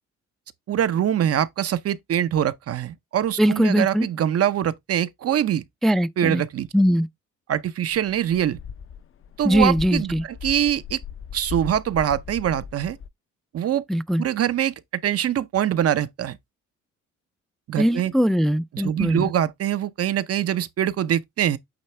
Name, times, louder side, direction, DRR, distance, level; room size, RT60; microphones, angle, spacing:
voice 1, 0.7-5.6 6.2-6.7 7.5-8.6 9.4-10.1 10.4-11.0 11.3-13.0 13.5-13.8 14.2-14.7 15.0-16.4 17.7-18.1 18.7-21.6, right 10 dB, 50° right, 0.7 m, -23 dB
voice 2, 3.4-4.1 5.8-6.4 6.7-7.1 9.4-10.2 13.9-14.2 17.8-19.3, equal, ahead, 0.4 m, -21 dB
sound 1, 7.9-13.1, left 7 dB, 45° left, 0.6 m, -38 dB
8.8 x 3.3 x 3.3 m
cardioid pair, 90°, 30 cm